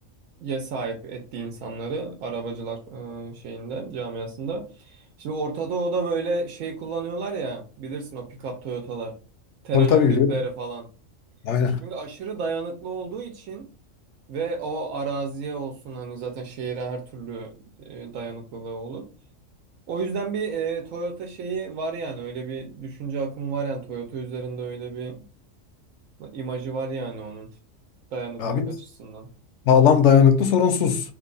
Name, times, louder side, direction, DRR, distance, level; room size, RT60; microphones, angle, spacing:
voice 1, 0.4-9.2 9.6-10.9 11.8-13.7 14.3-17.5 17.8-19.1 19.9-25.2 26.2-27.5 28.1-29.3, right 4 dB, 90° right, 1.0 m, -31 dB
voice 2, 9.7-10.3 11.5-11.8 28.4-28.7 29.7-31.0, left 7 dB, 70° left, 0.8 m, -17 dB
3.2 x 2.3 x 3.7 m
omnidirectional pair, 1.3 m